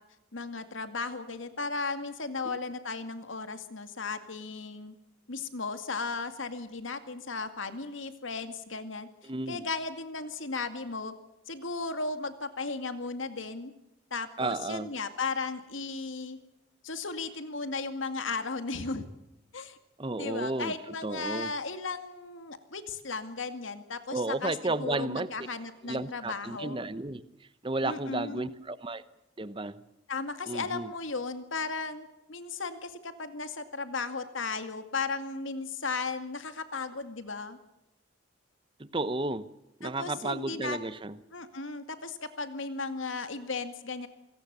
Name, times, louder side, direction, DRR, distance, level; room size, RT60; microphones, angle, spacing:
voice 1, 0.3-5.0 5.3-9.1 9.5-11.1 11.5-13.7 14.1-16.4 16.8-19.0 19.5-19.8 20.2-26.8 27.8-28.5 30.1-37.6 39.8-40.8 41.3-44.1, left 4 dB, 80° left, 9 dB, 2.2 m, -35 dB
voice 2, 9.2-9.6 14.4-14.9 20.0-21.5 24.1-25.3 25.8-27.2 27.6-29.0 29.4-29.8 30.5-30.9 38.8-39.5 39.8-41.2, right 2 dB, 25° right, 15 dB, 0.9 m, -33 dB
27.0 x 18.5 x 6.9 m, 0.92 s
head